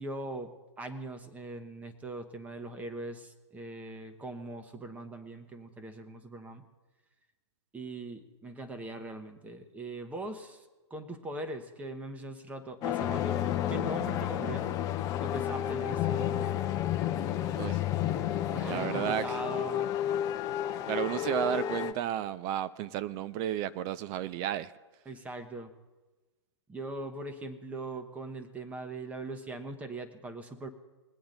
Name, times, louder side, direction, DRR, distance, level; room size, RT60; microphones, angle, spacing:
voice 1, 0.0-6.6 7.7-10.6 10.9-13.4 13.7-14.7 15.2-16.5 18.5-19.9 25.1-25.7 26.7-30.7, right 2 dB, 10° right, 7 dB, 1.1 m, -41 dB
sound 1, 12.8-21.9, left 11 dB, 25° left, 0.7 m, -31 dB
voice 2, 18.5-19.4 20.9-24.7, right 11 dB, 25° right, 15 dB, 0.4 m, -32 dB
21.0 x 8.6 x 3.9 m, 1.2 s
hypercardioid pair, 130°, 15 cm